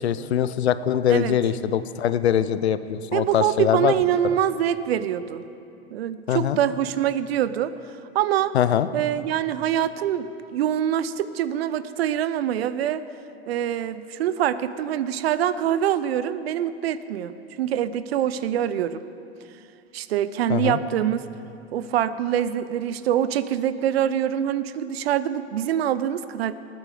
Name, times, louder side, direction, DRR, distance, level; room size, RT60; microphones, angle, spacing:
voice 1, 0.0-3.9 6.3-6.6 8.5-8.9 20.5-20.8, left 9 dB, 80° left, 14 dB, 0.6 m, -22 dB
voice 2, 3.1-5.4 5.9-7.7 8.1-8.5 8.9-13.0 13.5-19.0 19.9-21.2 21.7-26.5, right 10 dB, 70° right, 15 dB, 0.6 m, -24 dB
19.0 x 9.2 x 5.0 m, 2.7 s
hypercardioid pair, 85°, 32 cm